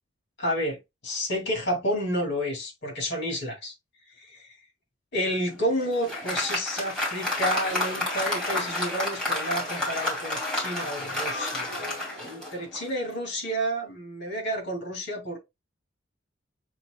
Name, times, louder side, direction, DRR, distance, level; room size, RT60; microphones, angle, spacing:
voice 1, 0.4-0.8 1.0-3.7 4.2-4.5 5.1-15.4, equal, 60° left, 2.2 m, -30 dB
Applause, 5.5-13.0, left 1 dB, 5° left, 2.3 m, -30 dB
7.2 x 2.8 x 2.2 m
head